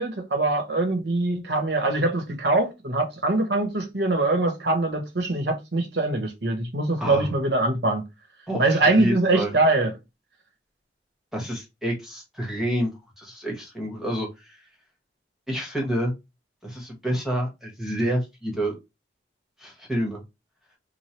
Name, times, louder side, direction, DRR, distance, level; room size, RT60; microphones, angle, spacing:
voice 1, 0.0-8.0 8.6-9.9, right 2 dB, 70° right, 1.0 m, -23 dB
voice 2, 7.0-7.3 8.5-9.5 11.3-14.6 15.5-16.1 16.6-18.7 19.6-20.2, equal, ahead, 1.2 m, -28 dB
3.1 x 2.2 x 4.2 m
head